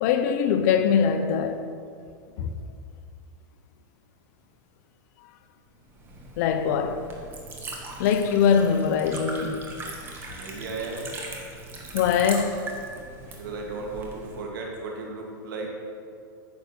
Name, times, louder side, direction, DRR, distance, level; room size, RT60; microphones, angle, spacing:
voice 1, 0.0-1.6 2.4-2.5 6.4-7.0 8.0-9.6 11.9-12.6, left 7 dB, 50° left, 0.8 m, -22 dB
Liquid, 5.9-14.4, right 2 dB, 20° right, 1.4 m, -40 dB
voice 2, 10.3-11.1 13.4-15.7, right 3 dB, 70° right, 2.6 m, -35 dB
9.4 x 6.4 x 6.9 m
supercardioid pair, 155°, 12 cm